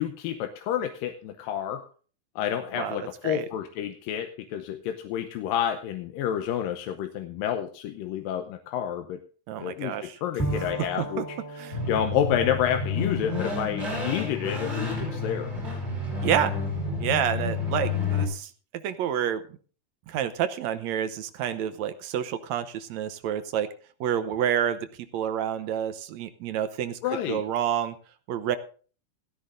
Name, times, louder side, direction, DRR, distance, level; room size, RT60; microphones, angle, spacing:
voice 1, 0.0-1.8 2.4-9.2 9.6-11.2 11.9-15.5 27.0-27.4, left 10 dB, 90° left, 7 dB, 2.6 m, -29 dB
voice 2, 9.5-10.2 10.5-10.7 11.0-11.2 11.6-11.8 16.2-16.5 17.0-18.5 18.8-19.4 20.1-23.7 24.0-24.8 25.1-27.0 27.3-27.9 28.3-28.6, right 9 dB, 70° right, 11 dB, 1.8 m, -28 dB
Bowed string instrument, 10.4-14.1, right 1 dB, 15° left, 0.9 m, -36 dB
sound 1, 11.7-18.3, left 4 dB, 25° right, 5.3 m, -30 dB
17.0 x 14.0 x 2.6 m, 0.39 s
omnidirectional pair, 3.9 m